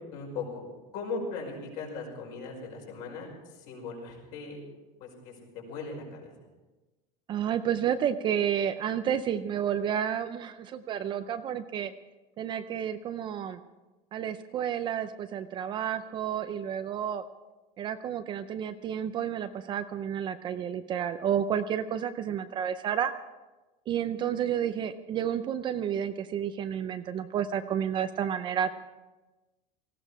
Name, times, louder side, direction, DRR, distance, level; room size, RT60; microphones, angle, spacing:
voice 1, 0.1-0.6 0.9-4.6 5.0-6.3, left 4 dB, 50° left, 0 dB, 5.5 m, -38 dB
voice 2, 7.3-11.9 12.4-13.6 14.1-17.2 17.8-23.1 23.9-28.7, right 9 dB, 25° right, 10 dB, 0.5 m, -30 dB
18.5 x 16.0 x 5.0 m, 1.1 s
cardioid pair, 170°, 18 cm